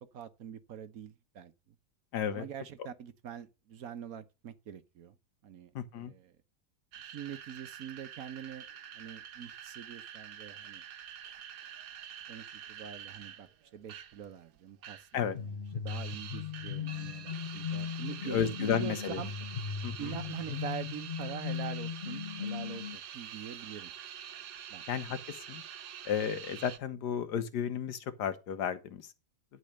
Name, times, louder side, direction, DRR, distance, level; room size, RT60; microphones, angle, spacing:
voice 1, 0.1-1.5 2.3-5.2 5.4-6.3 7.0-8.6 8.9-10.8 12.3-13.5 13.7-15.3 15.7-19.3 20.0-23.9 24.7-24.8, right 9 dB, 65° right, 1.3 m, -44 dB
voice 2, 2.1-2.4 5.7-6.1 15.1-15.4 18.2-19.2 19.8-20.2 24.9-25.6 26.0-29.1, left 8 dB, 85° left, 1.6 m, -33 dB
sound 1, 6.9-14.3 14.5-15.2 15.5-26.8, right 9 dB, 85° right, 1.5 m, -46 dB
sound 2, 15.3-23.0, left 7 dB, 45° left, 0.8 m, -38 dB
12.0 x 4.2 x 6.5 m
omnidirectional pair, 1.7 m